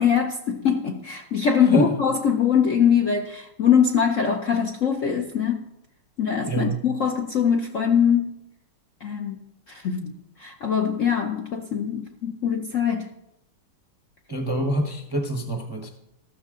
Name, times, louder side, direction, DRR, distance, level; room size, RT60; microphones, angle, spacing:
voice 1, 0.0-5.6 6.2-8.3 9.0-9.4 9.7-13.1, left 7 dB, 60° left, 0.8 m, -22 dB
voice 2, 6.5-6.8 14.3-15.9, right 2 dB, 20° right, 0.6 m, -26 dB
14.0 x 13.0 x 3.7 m
omnidirectional pair, 2.2 m